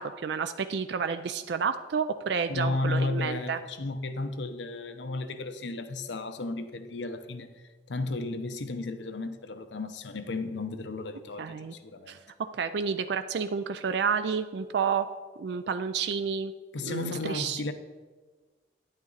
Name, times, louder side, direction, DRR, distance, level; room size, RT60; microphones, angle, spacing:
voice 1, 0.0-3.6 11.4-11.7 12.1-12.2 12.5-15.1 15.4-16.5 16.8-17.6, right 6 dB, 70° right, 0.4 m, -30 dB
voice 2, 2.5-12.2 16.7-17.7, left 2 dB, 85° left, 0.7 m, -34 dB
9.7 x 8.8 x 4.0 m
head